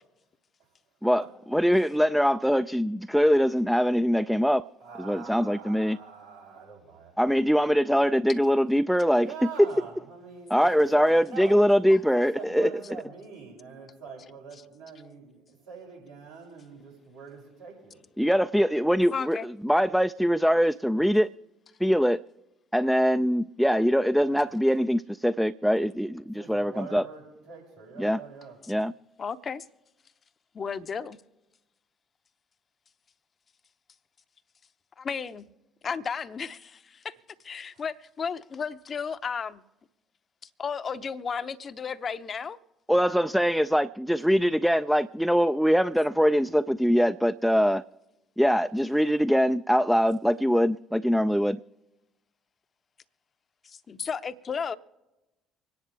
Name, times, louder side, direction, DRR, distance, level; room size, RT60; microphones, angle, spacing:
voice 1, 1.5-4.6 5.0-6.0 7.2-9.3 10.5-12.7 18.2-19.4 19.6-21.3 21.8-22.2 22.7-27.0 28.0-28.2 28.7-28.9 42.9-47.8 48.4-51.6, equal, ahead, 0.4 m, -23 dB
voice 2, 4.8-7.1 9.2-11.5 12.1-18.0 26.3-28.6 42.9-43.2, right 5 dB, 90° right, 5.7 m, -44 dB
voice 3, 11.9-12.5 19.1-19.5 28.6-28.7 29.2-29.7 30.5-31.2 35.0-35.5 35.8-37.2 37.4-39.6 40.6-42.6 53.6-54.8, left 6 dB, 40° left, 0.7 m, -34 dB
25.5 x 10.5 x 3.4 m
figure-of-eight pair, 50°, 0 cm